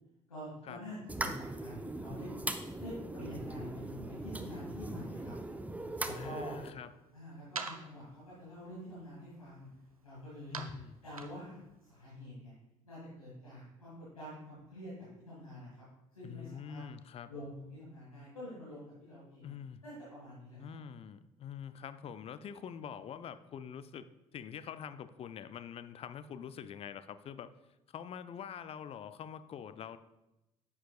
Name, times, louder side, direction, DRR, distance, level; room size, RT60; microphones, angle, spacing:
voice 1, 0.3-2.3 2.8-5.3 6.0-6.6 7.1-9.7 10.0-10.6 11.0-12.5 12.8-15.8 16.1-16.8 17.3-19.5 19.8-20.8, equal, 85° left, -8 dB, 2.1 m, -47 dB
sound 1, 1.1-6.7, right 2 dB, 10° right, 0.6 m, -40 dB
sound 2, 5.7-12.1, right 4 dB, 85° right, 0.5 m, -49 dB
voice 2, 6.1-6.9 10.5-11.0 16.2-17.3 19.4-19.8 20.6-24.1 24.3-27.5 27.9-30.0, left 8 dB, 35° left, 13 dB, 0.5 m, -45 dB
10.0 x 7.1 x 2.3 m, 0.95 s
figure-of-eight pair, 55°, 18 cm